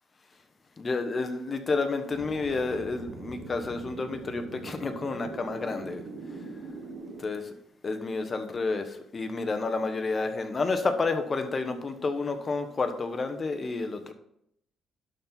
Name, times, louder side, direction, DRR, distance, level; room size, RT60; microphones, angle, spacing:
voice 1, 0.8-6.0 7.2-7.4 7.8-14.1, left 3 dB, 35° left, 7 dB, 1.1 m, -30 dB
sound 1, 2.1-7.2, right 3 dB, 85° right, 1.2 m, -42 dB
11.5 x 4.3 x 4.0 m, 0.73 s
cardioid pair, 90°, 0 cm